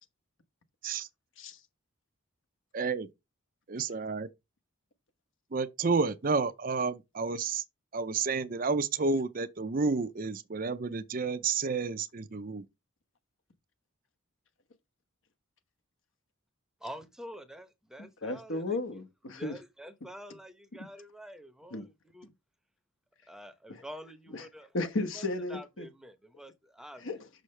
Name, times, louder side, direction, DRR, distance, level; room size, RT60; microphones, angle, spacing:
voice 1, 2.7-3.1 3.7-4.3 5.5-7.6 7.9-12.6, right 4 dB, 40° right, 0.5 m, -30 dB
voice 2, 16.8-18.8 19.3-21.8 22.1-22.3 23.3-24.7 25.5-27.1, equal, ahead, 0.8 m, -47 dB
voice 3, 18.0-19.6 21.7-21.9 23.7-23.8 24.3-24.5 24.7-25.9 27.0-27.3, left 2 dB, 60° left, 1.1 m, -35 dB
6.4 x 6.3 x 3.3 m
head